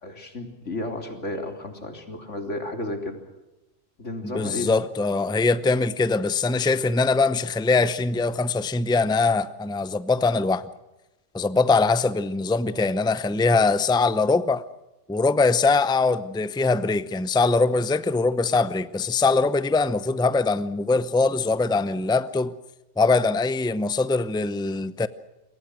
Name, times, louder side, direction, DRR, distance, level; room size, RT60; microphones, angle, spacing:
voice 1, 0.0-3.2 4.0-4.8, left 2 dB, 85° left, 3.9 m, -33 dB
voice 2, 4.2-10.7 11.3-14.6 15.1-22.5 23.0-25.1, left 3 dB, 5° left, 0.6 m, -22 dB
28.0 x 23.0 x 6.3 m
omnidirectional pair, 1.2 m